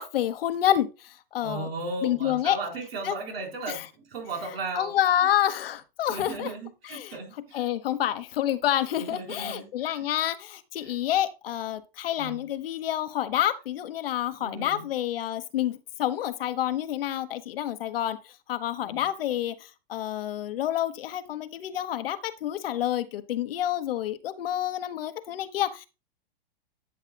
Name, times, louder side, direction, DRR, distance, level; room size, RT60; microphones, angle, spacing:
voice 1, 0.0-1.7 2.0-2.6 3.0-3.1 3.7-3.8 4.4-6.5 6.9-7.2 7.5-25.9, left 12 dB, 75° left, 1.2 m, -28 dB
voice 2, 1.4-4.9 6.1-7.6 9.0-10.1 10.8-11.0 12.2-12.4 14.4-14.9 18.8-19.0, right 3 dB, 80° right, 4.2 m, -36 dB
11.5 x 7.3 x 2.3 m
hypercardioid pair, 120°, 29 cm